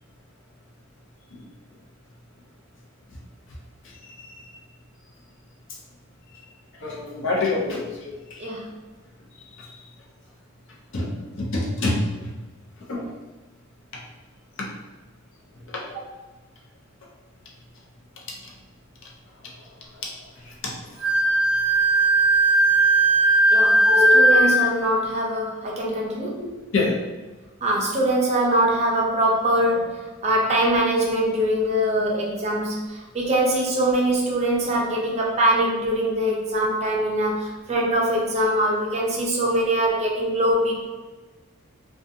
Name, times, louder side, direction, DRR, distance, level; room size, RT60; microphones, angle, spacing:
voice 1, 3.8-4.5 6.3-6.4 6.7-8.5 9.4-9.8 10.9-12.3 12.8-13.1 14.6-14.7 15.7-15.8 19.4-20.1 20.4-20.9 23.8-24.5 26.4-27.0, left 3 dB, 65° left, -3 dB, 0.6 m, -28 dB
Wind instrument woodwind instrument, 21.0-24.7, right 2 dB, 10° right, 1.0 m, -17 dB
voice 2, 23.5-23.8 24.1-26.4 27.6-40.8, right 1 dB, 30° right, -2 dB, 0.5 m, -23 dB
2.5 x 2.3 x 2.7 m, 1.2 s
head